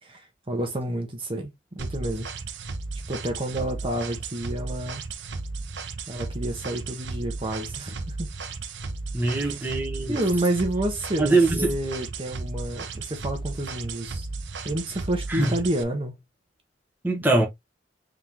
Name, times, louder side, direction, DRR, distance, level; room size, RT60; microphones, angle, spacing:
voice 1, 0.0-2.3 3.1-5.0 6.1-8.3 9.4-9.5 10.1-14.3 14.6-16.1, right 1 dB, 30° right, 1.1 m, -29 dB
sound 1, 1.8-15.8, right 3 dB, 80° right, 0.7 m, -35 dB
voice 2, 9.1-10.2 11.2-11.8 15.3-15.6 17.0-17.5, right 2 dB, 10° right, 1.1 m, -22 dB
3.7 x 3.7 x 2.9 m
head